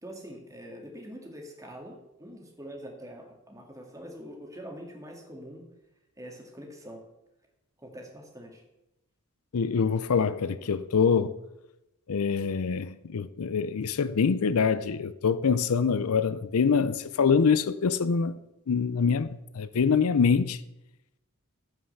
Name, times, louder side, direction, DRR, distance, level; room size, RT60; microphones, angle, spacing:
voice 1, 0.0-5.6 6.2-7.0 7.8-8.6, equal, 15° right, 2.0 m, -44 dB
voice 2, 9.5-11.4 12.1-18.4 18.7-20.6, left 5 dB, 75° left, 0.5 m, -25 dB
15.0 x 5.7 x 6.6 m
head